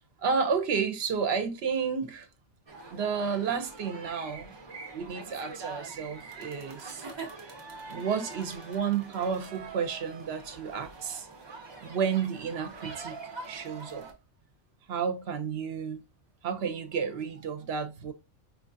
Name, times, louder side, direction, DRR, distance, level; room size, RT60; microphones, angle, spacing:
voice 1, 0.2-2.3 2.9-4.5 4.9-7.0 7.9-11.3 11.8-14.1 14.9-16.0 16.4-18.1, right 6 dB, 65° right, 0.7 m, -31 dB
sound 1, 2.7-14.1, right 3 dB, 35° right, 0.4 m, -44 dB
4.9 x 2.3 x 2.5 m
omnidirectional pair, 1.3 m